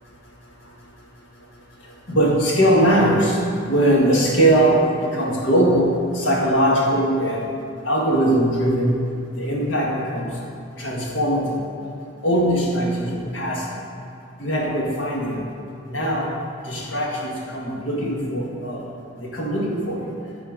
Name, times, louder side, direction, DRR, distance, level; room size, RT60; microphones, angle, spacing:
voice 1, 2.1-3.4 3.7-7.5 7.8-9.0 9.3-10.3 10.8-11.6 12.2-13.6 14.4-15.4 15.9-16.3 16.6-18.8 19.2-20.0, right 1 dB, 65° left, -3 dB, 1.7 m, -20 dB
10.5 x 4.4 x 5.2 m, 2.4 s
head